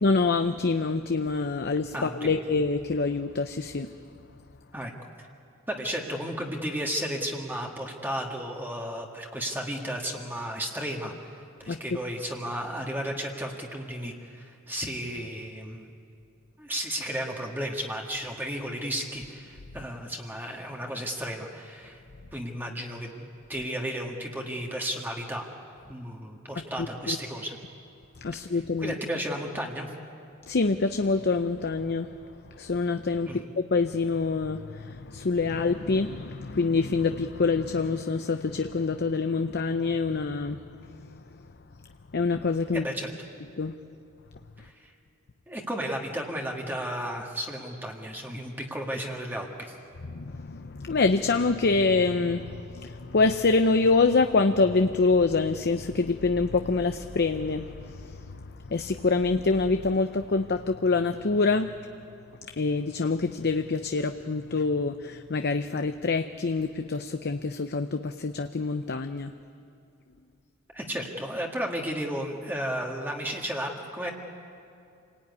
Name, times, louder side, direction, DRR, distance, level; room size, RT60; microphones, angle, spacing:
voice 1, 0.0-3.9 11.7-11.8 27.1-27.2 28.2-28.9 30.5-32.1 32.6-40.6 40.9-41.1 42.1-42.9 43.6-43.7 50.1-58.4 58.7-61.7 62.6-69.3, left 3 dB, 50° left, 8 dB, 0.7 m, -26 dB
voice 2, 1.9-2.3 4.7-4.9 5.7-11.1 11.6-15.9 16.6-22.0 22.3-25.5 25.9-27.6 28.8-29.9 33.3-33.4 42.7-43.1 44.6-44.9 45.5-49.7 70.7-74.1, equal, 10° right, 0 dB, 1.8 m, -33 dB
27.5 x 19.0 x 9.6 m, 2.5 s
head